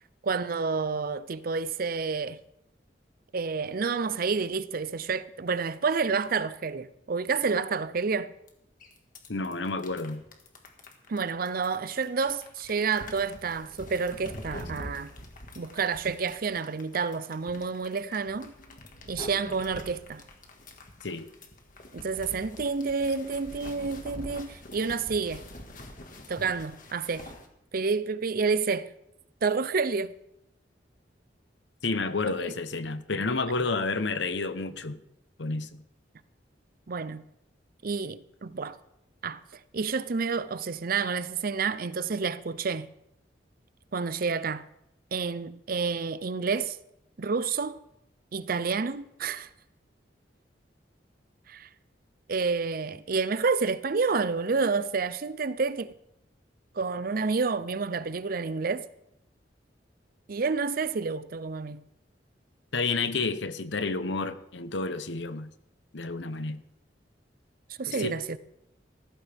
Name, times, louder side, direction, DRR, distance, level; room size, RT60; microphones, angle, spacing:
voice 1, 0.2-2.4 3.3-8.3 11.1-15.1 15.6-18.5 19.1-20.2 21.9-25.4 26.3-27.3 27.7-28.9 29.4-30.1 32.4-32.5 36.9-37.2 37.8-38.8 39.2-39.4 39.7-42.9 43.9-44.6 45.1-46.8 47.2-47.8 48.3-49.5 51.5-51.7 52.3-55.9 56.8-58.9 60.3-61.8 67.8-68.4, right 4 dB, 55° right, 0.6 m, -29 dB
sound 1, 8.5-8.6 8.8-27.5, left 1 dB, 50° left, 1.8 m, -45 dB
voice 2, 9.3-10.2 21.0-21.3 31.8-35.0 35.4-35.8 62.7-65.5 65.9-66.6 67.9-68.2, left 3 dB, 80° left, 0.9 m, -30 dB
16.0 x 14.5 x 3.5 m
head